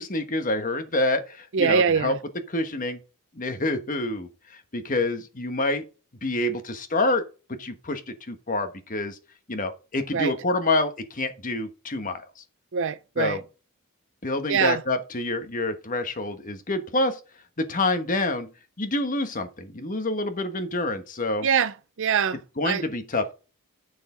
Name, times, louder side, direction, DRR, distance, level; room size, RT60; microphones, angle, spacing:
voice 1, 0.0-2.1 2.5-3.0 3.3-5.8 6.2-7.2 7.5-9.2 9.5-12.4 13.2-13.4 14.2-17.2 17.6-18.5 18.8-21.5 22.6-23.3, left 2 dB, 35° left, 1.3 m, -27 dB
voice 2, 1.5-2.2 10.1-10.3 12.7-13.4 14.5-14.8 21.4-22.4 22.6-22.8, right 6 dB, 60° right, 0.5 m, -23 dB
9.5 x 6.6 x 3.9 m
head